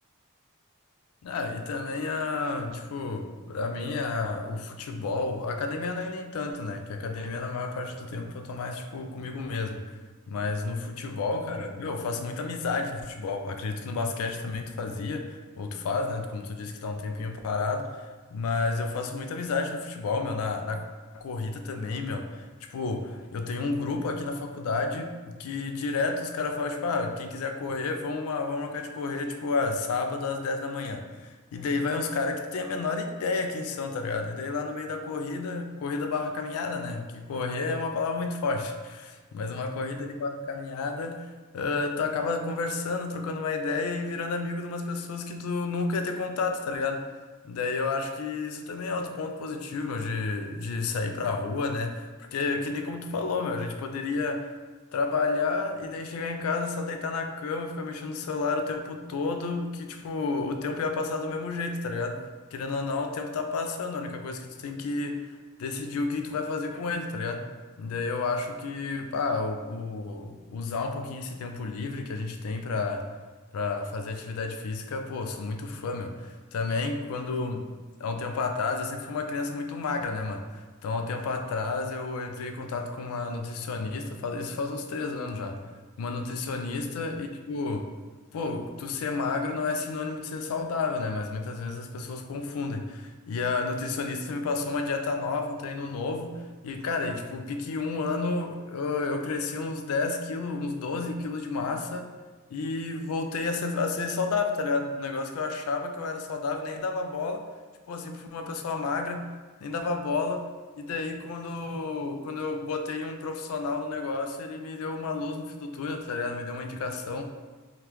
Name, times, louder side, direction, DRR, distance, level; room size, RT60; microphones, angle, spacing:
voice 1, 1.2-10.0 10.3-20.8 21.1-41.3 41.5-47.0 47.4-54.5 54.9-65.3 65.6-67.4 67.8-73.1 73.5-77.7 78.0-80.5 80.8-85.6 86.0-87.9 88.3-102.1 102.5-107.4 107.9-109.2 109.6-110.4 110.8-117.2, left 3 dB, 80° left, 6 dB, 0.3 m, -31 dB
2.9 x 2.4 x 3.3 m, 1.3 s
head